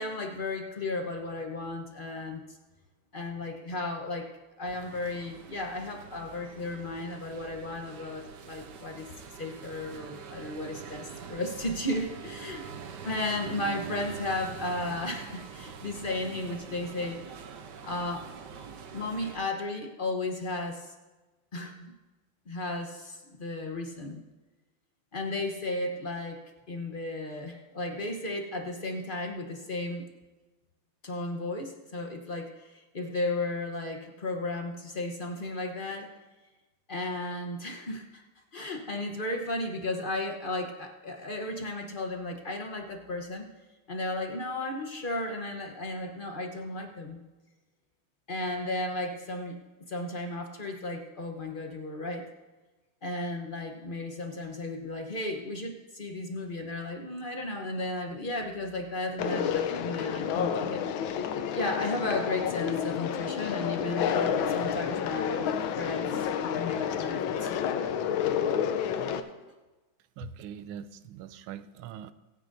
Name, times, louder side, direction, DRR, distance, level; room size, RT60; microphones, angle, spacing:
voice 1, 0.0-2.4 3.1-4.3 4.6-9.1 9.4-12.6 13.0-17.2 17.8-18.3 18.9-20.9 21.5-21.9 22.5-24.2 25.1-30.1 31.0-36.1 36.9-38.2 38.5-43.5 43.9-47.2 48.3-49.6 49.9-52.3 53.0-60.8 61.5-65.5 65.7-67.5, left 2 dB, 40° left, 3 dB, 0.8 m, -34 dB
sound 1, 4.7-19.4, right 6 dB, 65° right, 1.4 m, -44 dB
Conversation, 59.2-69.2, left 8 dB, 80° left, 1.5 m, -30 dB
voice 2, 70.2-72.1, right 10 dB, 90° right, 13 dB, 1.4 m, -42 dB
24.5 x 9.0 x 2.6 m, 1.2 s
omnidirectional pair, 2.2 m